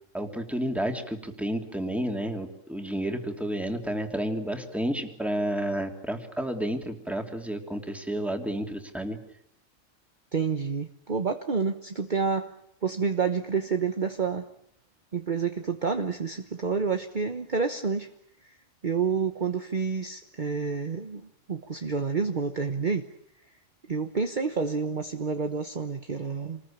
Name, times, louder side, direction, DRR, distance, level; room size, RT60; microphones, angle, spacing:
voice 1, 0.1-9.2, right 1 dB, ahead, 3 dB, 2.9 m, -31 dB
voice 2, 10.3-12.5 12.8-14.5 15.1-18.1 18.8-23.1 23.9-26.6, right 5 dB, 40° right, 6 dB, 1.3 m, -29 dB
27.5 x 20.5 x 8.8 m, 0.72 s
omnidirectional pair, 1.3 m